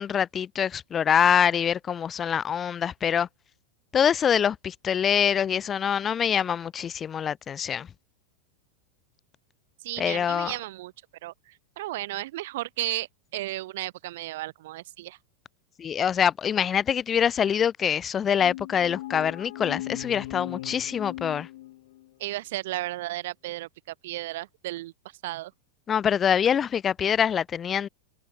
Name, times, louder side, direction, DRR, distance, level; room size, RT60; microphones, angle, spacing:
voice 1, 0.0-3.3 3.9-7.9 10.0-10.5 15.8-21.5 25.9-27.9, left 8 dB, 25° left, 0.4 m, -25 dB
voice 2, 9.8-10.9 11.2-15.2 22.2-24.9 25.2-25.5, right 17 dB, 55° right, 0.4 m, -34 dB
sound 1, 18.4-22.1, left 16 dB, 55° left, 1.0 m, -38 dB
figure-of-eight pair, 90°, 0 cm